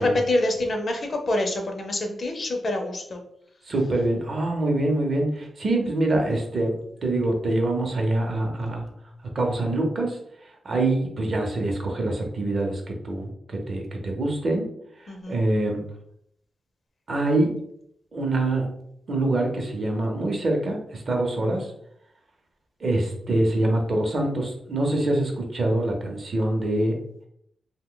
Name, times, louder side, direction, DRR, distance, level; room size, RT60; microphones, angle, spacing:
voice 1, 0.0-3.2 15.1-15.4, left 1 dB, 40° left, 3 dB, 0.5 m, -26 dB
voice 2, 3.7-6.8 7.0-8.9 9.3-10.2 10.6-14.7 15.3-15.8 17.1-17.6 18.1-18.8 19.1-21.7 22.8-26.9, right 2 dB, 45° right, 2 dB, 0.6 m, -25 dB
2.6 x 2.1 x 3.7 m, 0.72 s
wide cardioid pair, 145°, 0 cm